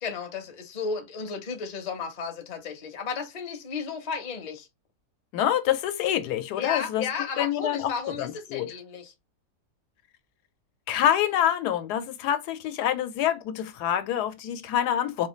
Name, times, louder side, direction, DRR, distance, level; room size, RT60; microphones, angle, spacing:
voice 1, 0.0-4.7 6.5-9.1, left 5 dB, 40° left, 0.6 m, -34 dB
voice 2, 5.3-7.0 7.4-7.9 8.2-8.7 10.9-15.3, left 11 dB, 85° left, 1.1 m, -26 dB
4.0 x 2.4 x 3.0 m
omnidirectional pair, 1.7 m